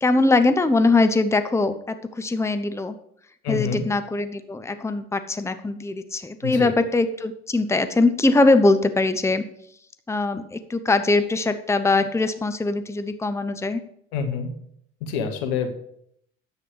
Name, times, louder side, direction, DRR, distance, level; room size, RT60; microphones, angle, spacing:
voice 1, 0.0-2.9 3.5-9.4 10.1-13.8, left 2 dB, 10° left, 10 dB, 0.9 m, -21 dB
voice 2, 3.4-3.9 6.4-6.7 14.1-14.5 15.0-15.7, left 6 dB, 75° left, 5 dB, 1.7 m, -27 dB
10.0 x 7.9 x 4.8 m, 0.69 s
hypercardioid pair, 65°, 32 cm